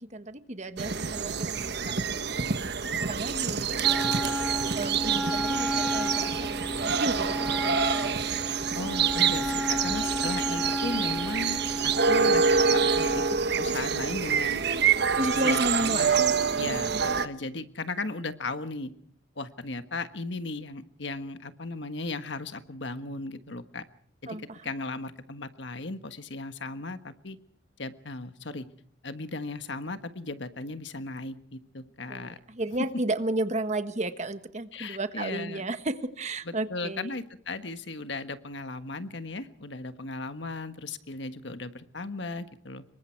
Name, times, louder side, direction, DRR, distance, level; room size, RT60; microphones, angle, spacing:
voice 1, 0.0-4.4 4.7-7.8 14.4-14.9 15.2-17.3 24.3-24.6 32.1-37.1, right 2 dB, 35° right, 10 dB, 1.4 m, -33 dB
sound 1, 0.8-17.3, right 6 dB, 60° right, 1.2 m, -27 dB
Wind instrument woodwind instrument, 3.8-13.4, equal, ahead, 1.5 m, -33 dB
voice 2, 8.7-13.2 13.5-14.6 15.2-16.3 16.6-18.9 19.4-23.8 24.2-27.4 27.8-28.7 29.0-32.4 34.7-35.7 36.4-42.8, left 3 dB, 65° left, 10 dB, 1.5 m, -36 dB
26.5 x 23.5 x 4.6 m, 0.63 s
head